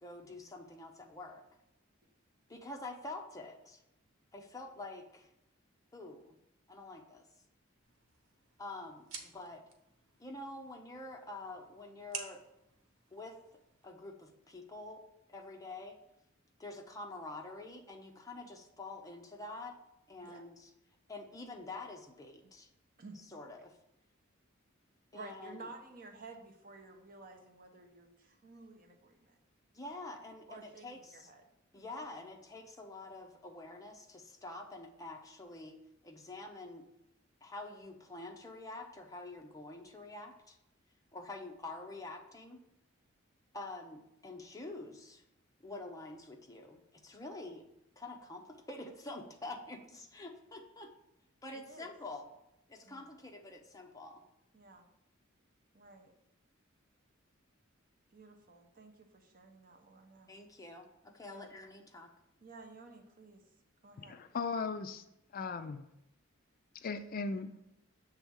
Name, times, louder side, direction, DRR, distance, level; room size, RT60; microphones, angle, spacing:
voice 1, 0.0-1.4 2.5-3.8 4.3-5.3 5.9-6.4 6.7-7.3 8.6-9.6 10.2-12.4 13.1-13.4 13.8-15.0 15.3-16.0 16.6-19.8 20.1-20.7 21.1-22.7 23.1-23.8 25.1-25.7 29.7-31.3 31.7-35.8 36.0-36.8 37.4-40.6 41.1-42.6 43.5-45.2 45.6-47.7 48.0-50.9 51.4-52.3 52.7-54.2 60.3-62.1, left 2 dB, 15° left, 3 dB, 0.7 m, -47 dB
sound 1, 7.8-13.8, right 6 dB, 90° right, 1.0 m, -51 dB
voice 2, 25.1-29.3 30.5-31.4 31.9-32.0 51.5-51.9 52.8-53.1 54.5-54.9 55.7-56.1 58.1-60.3 61.3-61.5 62.4-63.4 63.8-64.2, right 3 dB, 45° right, 4 dB, 0.9 m, -53 dB
voice 3, 64.0-65.0 65.3-65.8 66.8-67.5, left 4 dB, 45° left, 9 dB, 0.4 m, -37 dB
6.8 x 3.5 x 6.2 m, 0.84 s
head